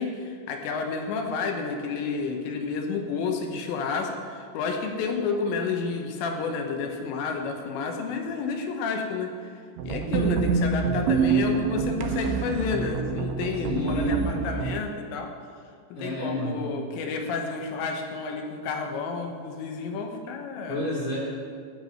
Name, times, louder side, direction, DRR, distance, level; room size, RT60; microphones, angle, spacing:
voice 1, 0.0-9.5 9.8-15.4 15.9-20.8, left 4 dB, 75° left, 4 dB, 3.0 m, -30 dB
sound 1, 9.8-14.8, right 5 dB, 85° right, 2.9 m, -26 dB
voice 2, 13.6-14.2 15.9-16.7 20.7-21.2, left 1 dB, 50° left, -6 dB, 2.4 m, -29 dB
13.5 x 5.5 x 7.8 m, 2.2 s
omnidirectional pair, 5.8 m